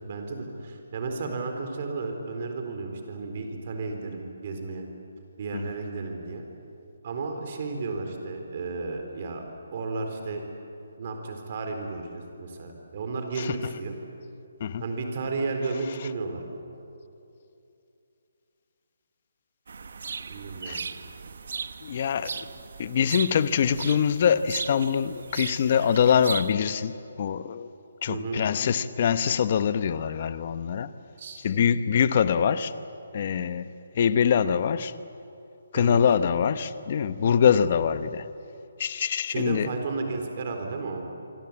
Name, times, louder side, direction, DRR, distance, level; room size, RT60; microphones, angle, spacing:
voice 1, 0.0-4.8 5.4-6.4 7.0-9.4 9.7-10.4 11.0-14.0 14.8-16.4 20.3-20.9 28.1-28.4 31.2-31.4 35.7-36.0 39.3-41.0, right 3 dB, 35° right, 4.1 m, -33 dB
sound 1, 19.7-26.5, right 5 dB, 60° right, 1.2 m, -37 dB
voice 2, 21.8-22.4 22.8-27.7 28.0-30.9 31.4-32.7 33.1-33.7 33.9-34.9 35.7-38.3 38.8-39.7, left 7 dB, 35° left, 0.9 m, -24 dB
26.5 x 25.0 x 8.8 m
hypercardioid pair, 170°, 0 cm